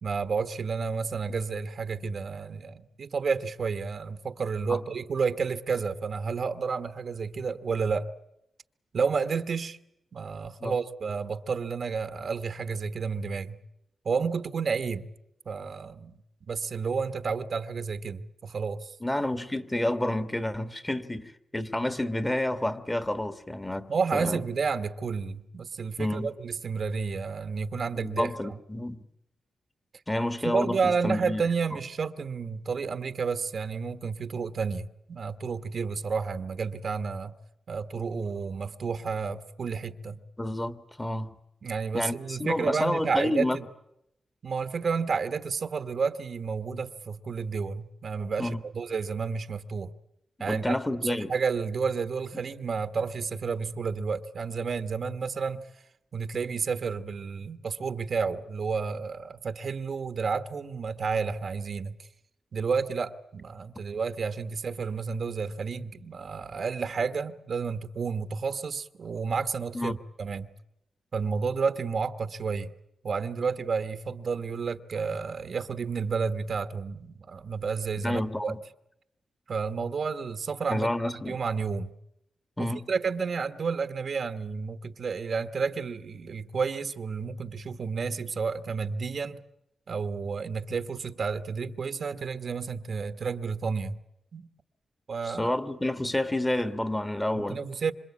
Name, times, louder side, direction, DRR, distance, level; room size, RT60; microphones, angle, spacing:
voice 1, 0.0-8.1 8.9-9.8 10.1-13.6 14.0-15.1 15.4-16.2 16.5-19.0 23.9-28.6 30.4-37.4 37.7-40.2 41.6-43.6 44.4-49.9 50.4-55.7 56.1-62.1 62.5-70.5 71.1-72.7 73.0-78.6 79.5-81.9 82.6-89.4 89.9-94.0 94.3-94.5 95.1-95.5 97.3-97.9, right 5 dB, 60° right, 1.3 m, -31 dB
voice 2, 19.0-24.4 26.0-26.3 27.9-29.0 30.1-31.4 40.4-41.3 41.9-43.6 48.4-48.6 50.4-51.3 69.7-70.0 78.0-78.6 80.7-81.4 82.6-82.9 95.2-97.6, left 1 dB, 15° left, 1.6 m, -29 dB
27.0 x 26.0 x 8.4 m
cardioid pair, 90°, 0 cm